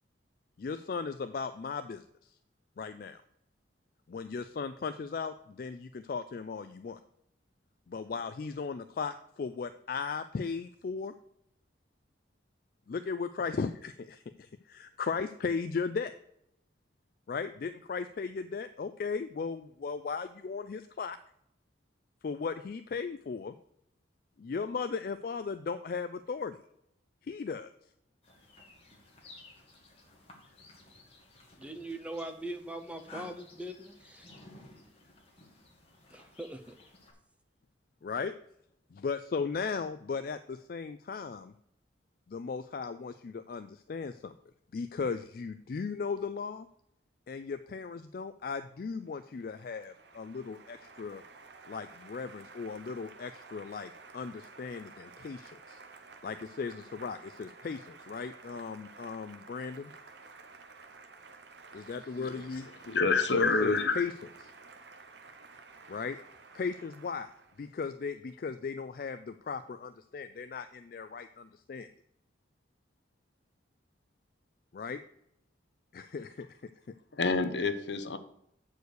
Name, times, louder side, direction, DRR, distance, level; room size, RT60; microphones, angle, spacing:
voice 1, 0.6-2.3 2.8-3.2 4.1-7.0 7.9-11.1 12.9-16.1 17.3-21.2 22.2-23.5 24.4-26.6 27.2-27.7 38.0-38.3 38.9-41.5 42.3-44.3 44.7-46.7 47.3-51.2 51.7-55.8 56.2-59.9 61.7-62.8 63.6-64.1 65.9-66.2 66.5-67.3 67.6-71.9 74.7-75.0 75.9-77.0, left 5 dB, 50° left, 10 dB, 0.3 m, -37 dB
sound 1, 28.2-37.1, left 2 dB, 30° left, 1.8 m, -55 dB
voice 2, 31.6-34.3 36.1-36.7, right 1 dB, 5° right, 7 dB, 0.7 m, -41 dB
Applause, 48.8-67.7, right 4 dB, 65° right, 0.9 m, -53 dB
voice 3, 62.9-64.0 77.1-78.2, left 4 dB, 70° left, 9 dB, 0.8 m, -27 dB
8.1 x 4.7 x 6.4 m, 0.74 s
head